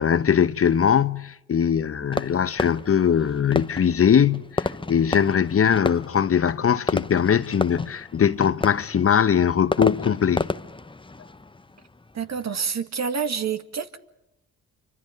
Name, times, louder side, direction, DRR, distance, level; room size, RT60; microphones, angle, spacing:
voice 1, 0.0-10.5, left 8 dB, 40° left, 0.9 m, -21 dB
Fireworks, 2.1-12.7, left 3 dB, 15° left, 0.9 m, -32 dB
voice 2, 12.1-14.0, right 6 dB, 50° right, 1.9 m, -28 dB
27.5 x 25.0 x 5.3 m
supercardioid pair, 50°, 34 cm